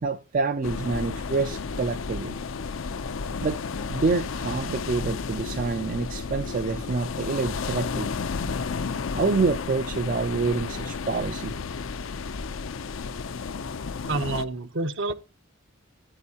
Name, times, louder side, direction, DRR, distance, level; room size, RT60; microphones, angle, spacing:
voice 1, 0.0-2.4 3.4-3.6 3.9-8.1 9.1-11.5, right 4 dB, 40° right, 0.4 m, -27 dB
Heavy waves in Henne, 0.6-14.4, left 5 dB, 70° left, 0.5 m, -32 dB
voice 2, 14.1-15.1, right 2 dB, 60° right, 0.8 m, -28 dB
12.5 x 9.4 x 2.8 m
head